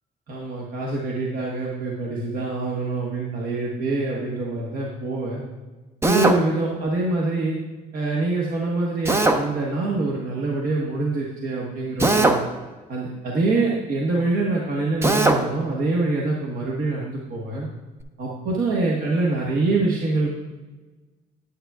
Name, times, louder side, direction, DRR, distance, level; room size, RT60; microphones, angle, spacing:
voice 1, 0.3-5.4 6.0-7.6 7.9-12.4 12.9-17.7 18.2-20.3, right 3 dB, 55° right, -3 dB, 1.3 m, -25 dB
Drill, 6.0-6.4 9.0-9.4 12.0-12.4 15.0-15.4, right 2 dB, 15° right, 0.6 m, -19 dB
9.8 x 8.9 x 2.4 m, 1.2 s
cardioid pair, 110°, 17 cm